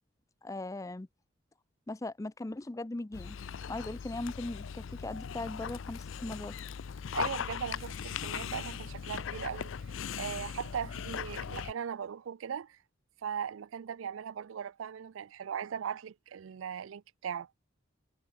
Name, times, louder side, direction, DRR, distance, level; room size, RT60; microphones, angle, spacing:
voice 1, 0.4-1.1 1.9-3.4 3.7-6.5, left 2 dB, 15° left, 0.4 m, -39 dB
Dog, 3.1-11.7, left 7 dB, 75° left, 0.5 m, -39 dB
voice 2, 7.1-9.7 10.2-12.8 13.2-17.5, right 7 dB, 80° right, 0.4 m, -39 dB
head